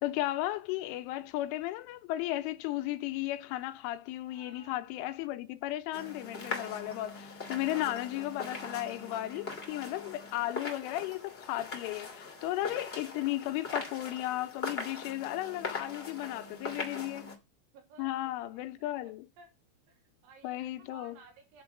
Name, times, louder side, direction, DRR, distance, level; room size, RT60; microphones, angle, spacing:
voice 1, 0.0-17.3 18.0-19.3 20.4-21.2, left 15 dB, 90° left, 3.3 m, -35 dB
voice 2, 4.3-5.0 16.3-17.3 17.7-19.5 19.9-21.6, right 3 dB, 75° right, 4.8 m, -58 dB
sound 1, 5.9-17.3, left 3 dB, 35° left, 0.9 m, -41 dB
10.5 x 4.7 x 7.0 m
omnidirectional pair, 5.5 m